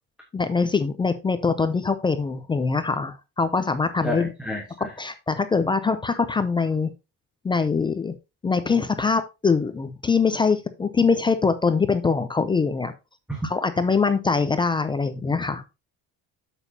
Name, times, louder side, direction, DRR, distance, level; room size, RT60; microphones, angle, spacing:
voice 1, 0.3-4.3 5.0-6.9 7.4-8.1 8.4-12.9 13.4-15.6, left 4 dB, 15° left, 11 dB, 0.3 m, -23 dB
voice 2, 4.0-4.9 13.3-13.5, right 1 dB, 5° right, 0 dB, 1.1 m, -30 dB
8.2 x 7.2 x 2.7 m, 0.26 s
cardioid pair, 175°, 36 cm